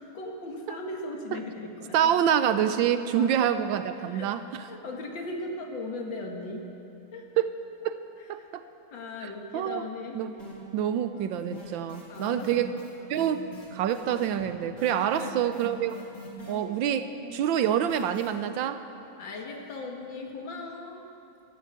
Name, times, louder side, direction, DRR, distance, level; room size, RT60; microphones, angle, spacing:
voice 1, 0.0-2.2 3.1-3.5 4.0-4.3 4.6-6.7 7.1-7.3 8.4-8.5 8.9-10.2 12.1-12.5 14.9-15.4 19.2-21.0, left 2 dB, 65° left, 1 dB, 2.3 m, -38 dB
voice 2, 1.9-4.7 7.4-7.5 7.8-8.0 8.3-8.6 9.2-9.8 10.1-10.3 10.7-12.7 13.1-13.4 13.7-16.0 16.5-18.8, right 9 dB, 75° right, 11 dB, 1.3 m, -27 dB
sound 1, 10.4-10.9 11.1-18.3, left 2 dB, 40° left, 3.3 m, -44 dB
13.0 x 11.5 x 8.1 m, 2.7 s
omnidirectional pair, 2.2 m